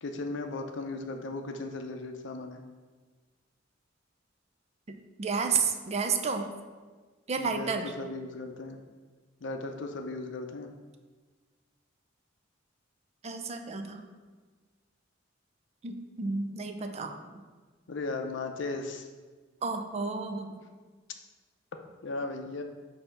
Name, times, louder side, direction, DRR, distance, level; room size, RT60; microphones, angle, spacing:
voice 1, 0.0-2.6 7.4-8.8 9.4-10.7 17.9-19.1 22.0-22.6, left 3 dB, 65° left, 5 dB, 0.6 m, -36 dB
voice 2, 5.2-6.5 7.3-7.9 13.2-14.0 15.8-17.4 19.6-20.6, right 5 dB, 35° right, 6 dB, 0.4 m, -31 dB
6.6 x 2.8 x 5.7 m, 1.4 s
head